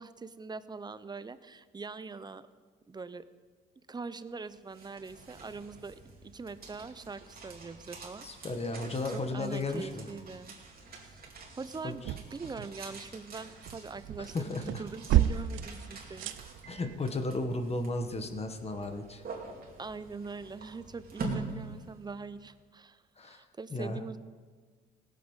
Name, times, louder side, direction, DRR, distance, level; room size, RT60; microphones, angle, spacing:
voice 1, 0.0-2.5 2.9-3.2 3.9-8.3 9.1-10.6 11.0-11.2 11.6-16.3 19.8-24.2, right 4 dB, 20° right, 14 dB, 0.6 m, -42 dB
sound 1, 4.5-22.5, right 3 dB, 50° right, 2.8 m, -46 dB
voice 2, 8.2-10.1 11.8-12.0 14.3-14.8 16.7-19.2 23.2-23.4 23.7-24.0, left 2 dB, 30° left, 6 dB, 1.4 m, -34 dB
sound 2, 11.8-13.0 13.3-17.0, right 12 dB, 80° right, 0.6 m, -32 dB
17.5 x 8.0 x 5.7 m, 1.5 s
cardioid pair, 90°, 20 cm